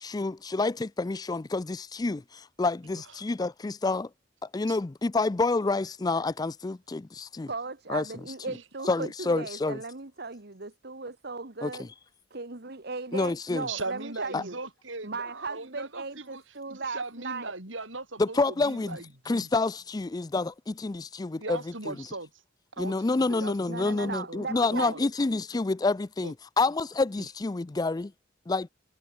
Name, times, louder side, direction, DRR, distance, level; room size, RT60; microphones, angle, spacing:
voice 1, 0.0-4.1 4.5-7.5 7.9-8.0 8.9-9.8 11.6-11.9 13.1-13.7 14.3-14.4 18.2-19.0 19.3-21.6 21.9-22.0 22.8-28.1 28.5-28.7, left 3 dB, 20° left, 0.4 m, -28 dB
voice 2, 7.5-11.9 12.3-14.6 15.0-17.5 23.7-25.1, right 3 dB, 55° right, 1.5 m, -37 dB
voice 3, 13.7-16.4 16.7-19.5 21.3-22.3 22.7-25.0 26.2-26.3 27.2-27.3, right 3 dB, 75° right, 7.3 m, -39 dB
head